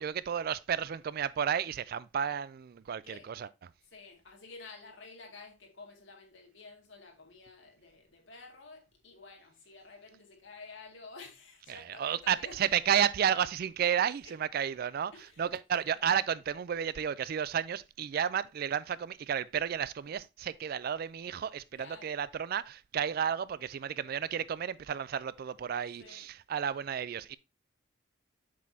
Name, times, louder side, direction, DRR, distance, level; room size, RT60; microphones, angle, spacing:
voice 1, 0.0-3.5 11.7-15.1 15.4-27.4, right 8 dB, 50° right, 0.3 m, -32 dB
voice 2, 3.8-12.7 14.2-14.4 15.1-15.6 15.9-16.1 21.8-22.2 23.2-23.3 26.0-26.3, left 3 dB, 70° left, 2.1 m, -51 dB
7.4 x 6.1 x 2.7 m
head